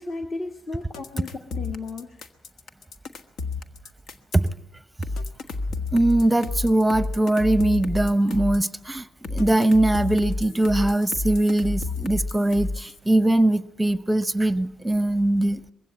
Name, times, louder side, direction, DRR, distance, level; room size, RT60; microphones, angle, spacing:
voice 1, 0.0-2.2, left 3 dB, 40° left, 1.6 m, -34 dB
sound 1, 0.9-4.5 5.0-8.7 9.2-13.0, left 3 dB, 70° left, 1.5 m, -30 dB
voice 2, 5.9-15.6, right 1 dB, 10° right, 0.9 m, -21 dB
22.5 x 15.5 x 8.5 m
cardioid pair, 90°, 0 cm